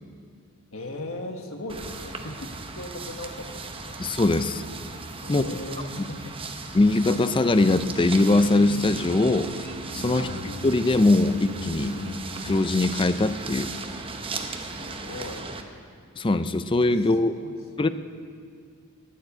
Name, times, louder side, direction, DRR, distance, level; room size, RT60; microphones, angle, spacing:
voice 1, 0.7-3.9 5.2-6.4 10.1-10.4 14.5-15.5 16.9-17.1 17.4-17.9, left 2 dB, 65° left, 3 dB, 1.5 m, -38 dB
sound 1, 1.7-15.6, right 3 dB, 25° right, 0.8 m, -37 dB
voice 2, 4.0-4.6 5.3-5.4 6.7-9.5 9.9-10.3 10.6-12.0 12.4-13.7 16.2-17.4 17.8-17.9, left 2 dB, 20° left, 11 dB, 0.4 m, -21 dB
sound 2, 7.1-12.7, left 1 dB, 80° left, 1.4 m, -40 dB
12.0 x 9.4 x 9.9 m, 2.2 s
head